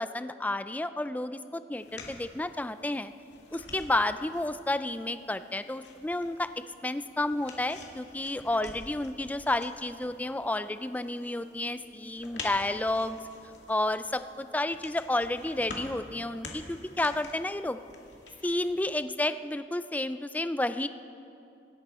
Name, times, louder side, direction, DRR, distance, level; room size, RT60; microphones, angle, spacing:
voice 1, 0.0-3.1 3.5-6.5 6.8-13.2 13.7-17.8 18.4-20.9, left 2 dB, 10° left, 11 dB, 0.4 m, -31 dB
sound 1, 1.7-19.0, left 3 dB, 85° left, 2.2 m, -48 dB
25.5 x 11.5 x 4.2 m, 2.7 s
head